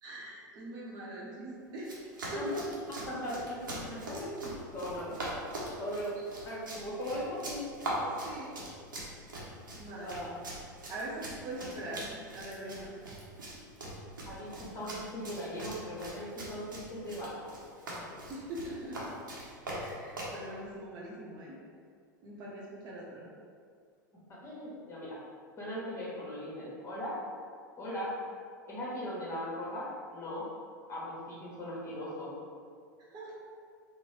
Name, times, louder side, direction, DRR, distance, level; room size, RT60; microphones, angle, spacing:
voice 1, 0.0-2.6 6.2-6.3 8.0-8.5 9.0-9.4 9.7-10.3 10.9-12.9 18.3-19.2 19.7-21.6 22.2-23.3 33.0-33.3, right 1 dB, 40° right, -5 dB, 0.8 m, -42 dB
Run, 1.8-20.4, right 1 dB, 85° right, 0.8 m, -42 dB
voice 2, 3.1-5.1 5.8-6.2 6.4-7.6 10.0-10.4 13.4-13.6 14.2-17.5 24.4-25.2 25.6-27.2 27.8-28.1 28.7-30.5 30.9-32.3, equal, 25° left, -7 dB, 1.2 m, -39 dB
3.7 x 2.1 x 3.2 m, 2.2 s
hypercardioid pair, 90°, 11 cm